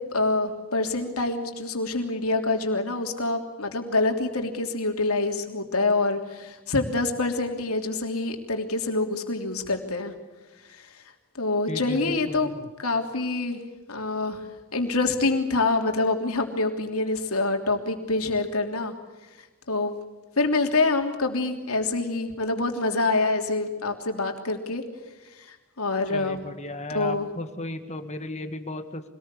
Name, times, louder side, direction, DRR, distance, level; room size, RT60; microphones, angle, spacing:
voice 1, 0.1-10.1 10.7-11.0 11.3-12.5 12.8-13.6 13.9-14.4 14.7-18.9 19.7-19.9 20.4-24.8 25.2-26.4 26.9-27.3, left 3 dB, 80° left, 4 dB, 3.3 m, -26 dB
voice 2, 11.7-12.7 26.1-29.0, left 1 dB, 30° left, 8 dB, 1.9 m, -35 dB
25.0 x 19.5 x 8.5 m, 1.2 s
head